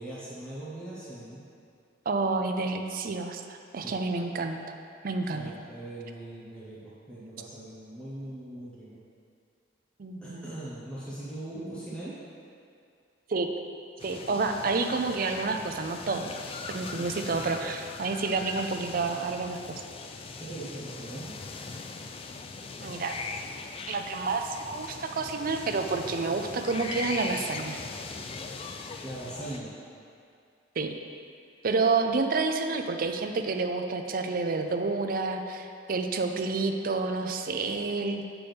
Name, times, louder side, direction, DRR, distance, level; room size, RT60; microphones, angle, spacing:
voice 1, 0.0-1.4 3.8-3.9 5.3-9.0 10.2-12.2 16.9-17.1 20.4-21.3 29.0-29.7, right 1 dB, 5° left, -10 dB, 1.1 m, -40 dB
voice 2, 2.1-4.6 5.0-5.5 10.0-10.4 11.5-11.8 13.3-13.5 14.0-16.3 16.7-19.6 22.8-23.2 23.9-27.8 30.8-30.9 31.6-38.3, right 3 dB, 50° right, 5 dB, 0.5 m, -29 dB
sound 1, 14.0-29.6, left 4 dB, 30° left, 0.3 m, -40 dB
8.4 x 6.1 x 3.4 m, 2.4 s
head